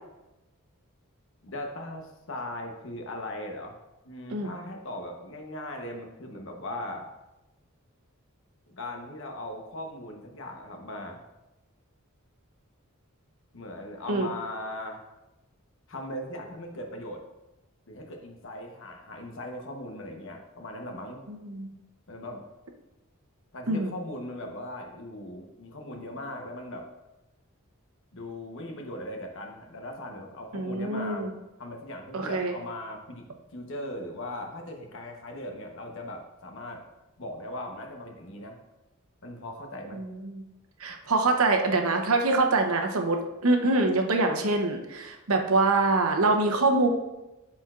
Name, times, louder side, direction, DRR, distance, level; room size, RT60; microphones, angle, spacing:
voice 1, 1.4-3.8 4.0-7.1 8.7-11.2 13.5-15.0 15.9-17.2 17.9-21.2 22.1-22.4 23.5-26.9 28.1-31.3 31.6-33.2 33.5-36.8 37.2-38.6 39.2-40.0, left 1 dB, 60° left, 3 dB, 1.0 m, -39 dB
voice 2, 21.3-21.7 23.7-23.9 30.5-31.3 32.1-32.5 39.9-40.4 40.8-46.9, right 3 dB, 75° right, 3 dB, 0.8 m, -25 dB
12.0 x 4.3 x 2.5 m, 1.0 s
head